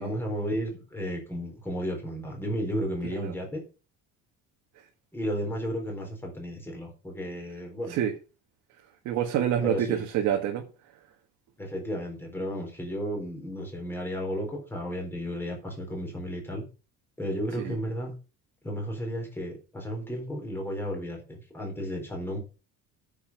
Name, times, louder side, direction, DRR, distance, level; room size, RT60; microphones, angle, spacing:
voice 1, 0.0-3.6 5.1-8.0 9.6-10.0 11.6-16.6 17.2-18.1 18.6-22.4, equal, 5° left, 4.0 m, -33 dB
voice 2, 9.1-10.7 17.6-17.7, right 10 dB, 60° right, 1.8 m, -27 dB
9.3 x 7.1 x 5.5 m
cardioid pair, 175°, 32 cm